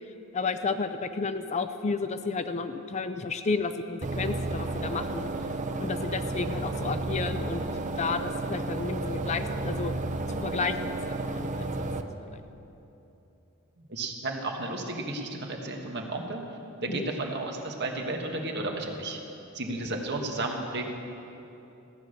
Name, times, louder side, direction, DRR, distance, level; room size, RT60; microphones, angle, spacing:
voice 1, 0.3-5.3 5.8-7.6 8.0-9.9 10.3-11.9 12.3-12.4 16.9-17.1, left 4 dB, 30° left, 10 dB, 0.4 m, -32 dB
sound 1, 4.0-12.0, right 2 dB, 35° right, 0.6 m, -32 dB
voice 2, 13.9-16.4 16.8-19.2 19.5-20.8, right 2 dB, 50° right, 2 dB, 1.5 m, -33 dB
15.0 x 9.3 x 6.5 m, 2.9 s
head